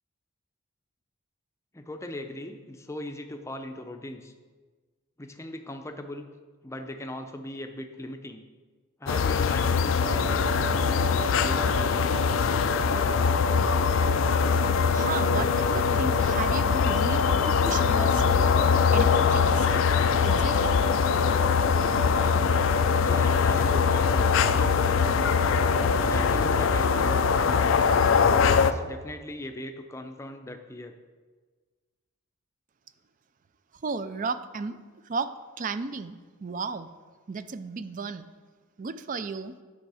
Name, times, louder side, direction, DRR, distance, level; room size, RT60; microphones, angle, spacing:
voice 1, 1.7-4.3 5.2-6.3 6.6-8.4 9.0-12.4 23.0-25.2 25.9-27.7 28.2-30.9, left 1 dB, 15° left, 6 dB, 0.5 m, -39 dB
sound 1, 9.1-28.7, left 6 dB, 60° left, 0.4 m, -22 dB
sound 2, 10.0-28.6, right 4 dB, 60° right, 2.5 m, -36 dB
voice 2, 14.9-18.4 18.9-19.9 20.2-20.8 33.8-34.8 35.0-36.9 37.3-38.3 38.8-39.5, right 4 dB, 35° right, 12 dB, 0.4 m, -34 dB
9.3 x 6.2 x 4.8 m, 1.4 s
head